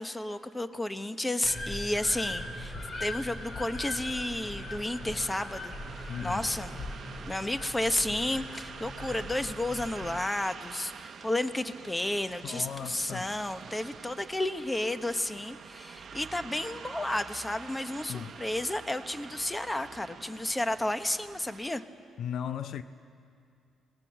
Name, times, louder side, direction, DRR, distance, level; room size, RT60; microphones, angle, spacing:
voice 1, 0.0-2.7 3.0-6.7 7.3-21.8, left 1 dB, 15° left, 1.0 m, -32 dB
sound 1, 1.4-10.2, left 1 dB, 40° left, 3.0 m, -40 dB
sound 2, 2.1-21.8, right 6 dB, 55° right, 0.8 m, -47 dB
voice 2, 6.1-6.5 12.4-13.3 18.1-18.3 22.2-22.8, left 8 dB, 70° left, 0.6 m, -36 dB
25.0 x 19.0 x 7.6 m
cardioid pair, 90°, 0 cm